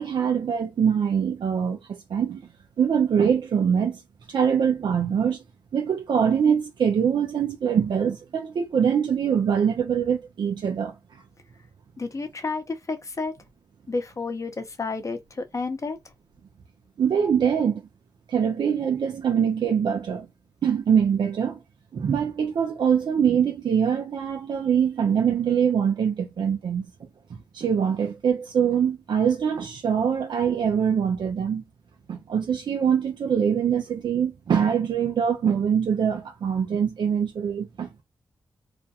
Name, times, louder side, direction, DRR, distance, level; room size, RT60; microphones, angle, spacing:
voice 1, 0.0-2.4 2.8-4.0 4.3-5.4 5.7-10.9 17.0-17.8 18.3-20.3 20.6-21.6 21.9-26.9 27.3-31.6 32.1-38.0, right 7 dB, 70° right, 0.5 m, -23 dB
voice 2, 12.0-13.4 13.9-16.0, left 3 dB, 40° left, 0.9 m, -31 dB
2.5 x 2.2 x 2.7 m
cardioid pair, 50°, 8 cm